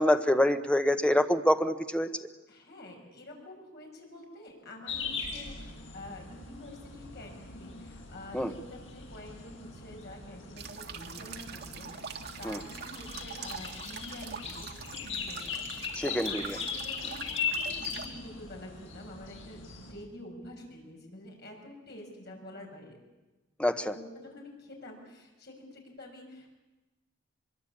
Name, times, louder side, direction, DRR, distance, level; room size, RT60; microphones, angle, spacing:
voice 1, 0.0-2.1 8.3-8.5 12.4-12.6 16.0-16.5 23.6-23.9, left 1 dB, 5° left, 8 dB, 1.1 m, -26 dB
voice 2, 2.5-23.0 23.9-26.5, left 1 dB, 55° left, 1 dB, 6.7 m, -48 dB
sound 1, 4.9-19.9, left 5 dB, 70° left, 5.9 m, -39 dB
sound 2, 10.6-18.1, right 6 dB, 55° right, 1.8 m, -44 dB
23.5 x 22.5 x 8.7 m, 1.1 s
head